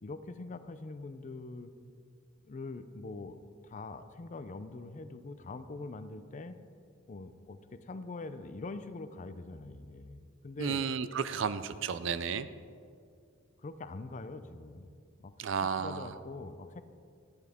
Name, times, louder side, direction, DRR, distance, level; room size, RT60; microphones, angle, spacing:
voice 1, 0.0-1.7 2.4-3.4 3.6-6.6 7.1-10.8 13.6-14.9 15.2-15.3 15.6-16.8, left 3 dB, 40° left, 11 dB, 0.5 m, -43 dB
voice 2, 10.6-12.5 15.4-16.1, right 6 dB, 70° right, 14 dB, 0.4 m, -33 dB
11.5 x 9.8 x 3.6 m, 2.3 s
head